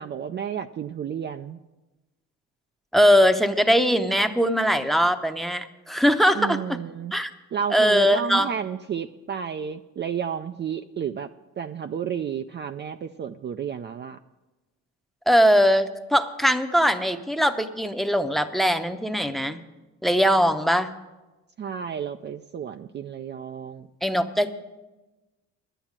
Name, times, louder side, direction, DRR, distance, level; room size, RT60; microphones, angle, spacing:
voice 1, 0.0-1.6 6.4-7.1 7.5-11.3 11.6-14.2 21.6-23.9, right 8 dB, 35° right, 8 dB, 0.4 m, -31 dB
voice 2, 2.9-6.8 7.1-7.3 7.7-8.5 15.3-19.6 20.0-20.9 24.0-24.6, equal, ahead, 9 dB, 0.7 m, -21 dB
11.0 x 9.0 x 7.3 m, 1.1 s
cardioid pair, 90°, 30 cm